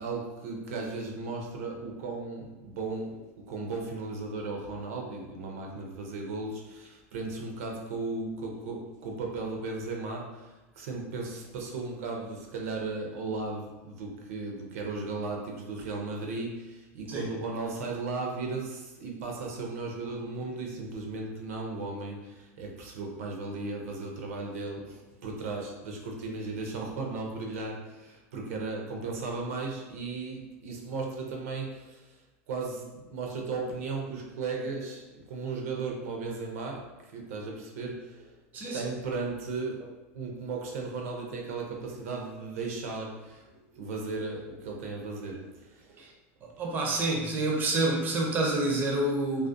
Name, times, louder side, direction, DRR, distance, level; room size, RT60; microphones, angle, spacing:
voice 1, 0.0-38.4 38.7-46.1, right 3 dB, 80° right, 0 dB, 0.6 m, -36 dB
voice 2, 46.6-49.5, right 2 dB, 25° right, -1 dB, 0.4 m, -28 dB
2.4 x 2.1 x 2.5 m, 1.1 s
supercardioid pair, 145°, 8 cm